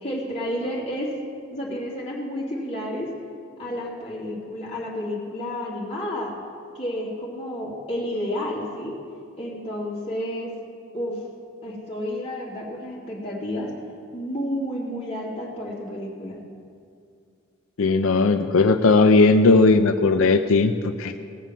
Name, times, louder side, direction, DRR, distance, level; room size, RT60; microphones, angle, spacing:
voice 1, 0.0-1.1 1.5-3.1 3.6-6.3 6.7-9.0 9.4-10.5 10.9-11.2 11.6-13.7 14.1-16.4, equal, 30° left, -5 dB, 2.8 m, -30 dB
voice 2, 17.8-21.2, left 3 dB, 90° left, 8 dB, 0.5 m, -17 dB
18.0 x 6.9 x 7.4 m, 2.4 s
head